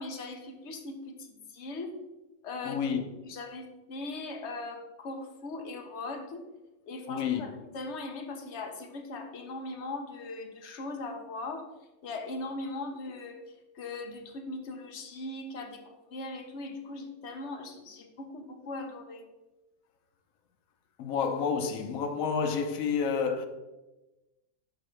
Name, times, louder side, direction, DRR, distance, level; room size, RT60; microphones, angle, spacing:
voice 1, 0.0-2.0 2.4-2.8 3.2-6.4 6.9-11.7 12.0-13.4 13.7-19.3, left 2 dB, 60° left, 1.0 m, -39 dB
voice 2, 2.6-3.0 7.1-7.4 21.0-23.5, left 6 dB, 90° left, 1.1 m, -29 dB
10.5 x 3.5 x 3.1 m
omnidirectional pair, 1.4 m